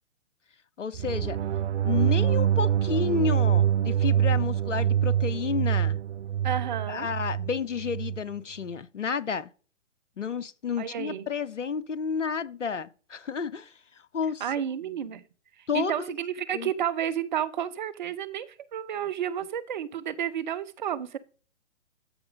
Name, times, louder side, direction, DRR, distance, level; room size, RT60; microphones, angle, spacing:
voice 1, 0.8-1.4 1.8-6.0 6.9-9.5 10.2-14.5 15.7-16.1 16.5-16.7, left 6 dB, 75° left, 0.8 m, -31 dB
sound 1, 0.9-8.2, right 10 dB, 65° right, 0.5 m, -25 dB
voice 2, 6.4-7.1 10.8-11.2 14.4-15.2 15.7-18.5 18.7-21.2, right 9 dB, 40° right, 0.8 m, -31 dB
13.0 x 4.6 x 5.1 m
figure-of-eight pair, 125°, 37 cm